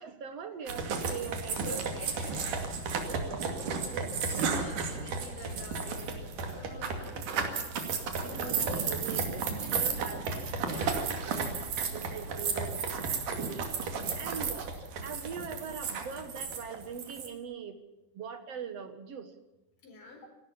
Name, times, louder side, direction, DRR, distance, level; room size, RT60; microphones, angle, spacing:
voice 1, 0.0-1.8 3.1-4.7 8.2-10.2 10.8-11.6 11.9-12.8 13.1-13.7 14.1-14.7 15.0-17.8 18.1-19.3, right 6 dB, 55° right, 10 dB, 2.3 m, -42 dB
sound 1, 0.7-17.3, right 5 dB, 80° right, 3.9 m, -33 dB
voice 2, 1.6-2.8 4.5-7.7 8.3-8.8 9.3-10.2 10.7-11.0 19.8-20.3, left 2 dB, 80° left, 4 dB, 6.0 m, -47 dB
28.0 x 13.0 x 7.2 m, 0.98 s
omnidirectional pair, 3.6 m